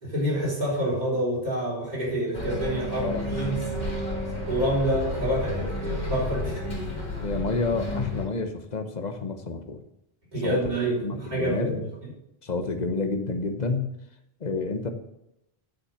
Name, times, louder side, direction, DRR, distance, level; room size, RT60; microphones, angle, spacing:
voice 1, 0.0-3.6 4.5-6.6 10.3-12.1, right 1 dB, 40° right, -6 dB, 4.4 m, -27 dB
Bus, 2.3-8.3, left 1 dB, 85° left, 3.4 m, -31 dB
voice 2, 3.0-3.6 7.2-9.8 10.4-10.7 11.0-11.8 12.4-13.9 14.4-14.9, left 3 dB, 45° left, 7 dB, 1.1 m, -29 dB
8.5 x 6.6 x 6.4 m, 0.84 s
omnidirectional pair, 1.1 m